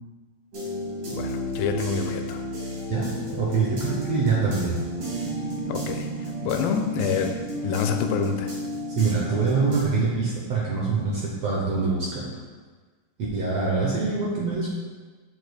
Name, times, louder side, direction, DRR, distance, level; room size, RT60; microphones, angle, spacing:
sound 1, 0.5-9.8, equal, 50° right, 3.0 m, -32 dB
voice 1, 1.1-2.4 5.7-8.6, left 6 dB, 85° left, 5 dB, 2.2 m, -27 dB
voice 2, 2.9-4.8 8.9-12.1 13.3-14.7, right 4 dB, 70° right, -4 dB, 1.6 m, -24 dB
9.4 x 6.3 x 2.3 m, 1.4 s
omnidirectional pair, 3.9 m